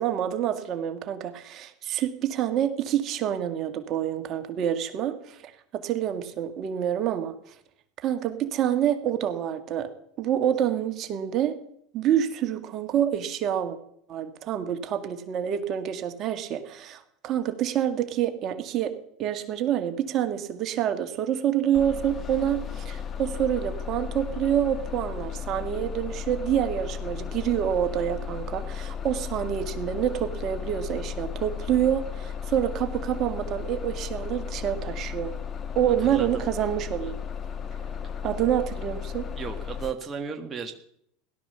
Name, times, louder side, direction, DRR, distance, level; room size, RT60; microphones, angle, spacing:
voice 1, 0.0-7.3 8.0-9.9 10.2-11.6 11.9-13.8 14.1-18.9 19.2-35.3 35.8-37.1 38.2-39.3, right 10 dB, 45° right, 7 dB, 1.9 m, -27 dB
Bus, 21.7-39.9, left 7 dB, 35° left, 1.5 m, -35 dB
voice 2, 36.0-36.4 39.4-40.7, right 6 dB, 25° right, 4 dB, 1.7 m, -34 dB
17.0 x 12.0 x 6.9 m, 0.72 s
hypercardioid pair, 100°, 0 cm